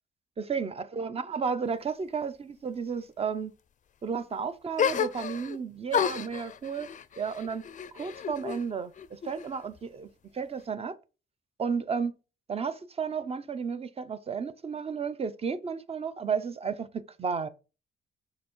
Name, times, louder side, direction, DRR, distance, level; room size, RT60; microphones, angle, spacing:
voice 1, 0.4-3.5 4.0-6.9 7.2-7.6 7.9-10.1 10.3-11.0 11.6-12.1 12.5-17.5, right 6 dB, 30° right, 0.6 m, -33 dB
sound 1, 4.8-5.6 5.9-8.6 9.0-9.8, left 8 dB, 40° left, 0.5 m, -31 dB
5.5 x 4.1 x 4.3 m
cardioid pair, 90°, 20 cm